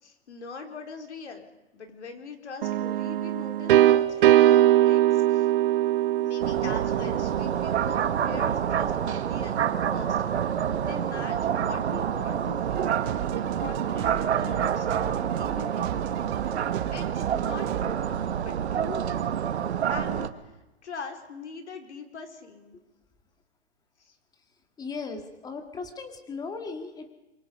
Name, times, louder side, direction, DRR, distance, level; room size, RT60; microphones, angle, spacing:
voice 1, 0.0-5.5 6.2-16.6 16.9-18.1 18.4-19.0 19.9-22.8 24.0-24.2, left 5 dB, 80° left, 5 dB, 4.5 m, -42 dB
sound 1, 2.6-8.3, right 13 dB, 50° right, 1.1 m, -22 dB
sound 2, 6.4-20.3, right 9 dB, 70° right, 1.7 m, -27 dB
sound 3, 12.7-17.8, right 16 dB, 25° right, 0.6 m, -38 dB
voice 2, 24.8-27.1, left 4 dB, 10° left, 7 dB, 2.1 m, -37 dB
26.5 x 23.5 x 5.4 m, 1.1 s
hypercardioid pair, 145°, 34 cm